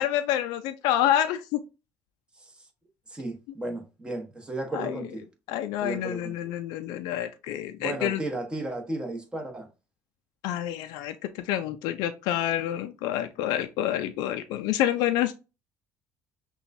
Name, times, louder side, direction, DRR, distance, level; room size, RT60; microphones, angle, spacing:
voice 1, 0.0-1.6 4.7-5.0 5.5-8.2 10.4-15.3, left 12 dB, 85° left, 0.4 m, -28 dB
voice 2, 3.1-5.3 5.8-6.5 7.8-9.7, right 2 dB, 15° right, 1.1 m, -34 dB
5.7 x 2.3 x 2.6 m
cardioid pair, 110°, 7 cm